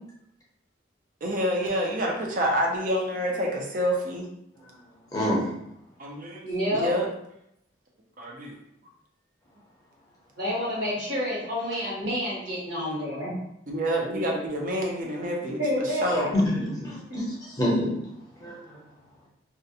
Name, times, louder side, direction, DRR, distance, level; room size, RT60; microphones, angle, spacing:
voice 1, 1.2-4.3 6.0-6.5 6.7-7.1 8.2-8.5 13.7-16.3, equal, 45° right, 0 dB, 0.5 m, -28 dB
voice 2, 5.1-5.5 16.1-17.2 17.6-18.0 18.4-18.8, left 1 dB, 20° left, -6 dB, 0.7 m, -27 dB
voice 3, 6.4-6.9 10.4-13.3 15.6-16.3 17.1-17.2, equal, 60° right, -6 dB, 1.2 m, -28 dB
2.4 x 2.1 x 2.7 m, 0.78 s
head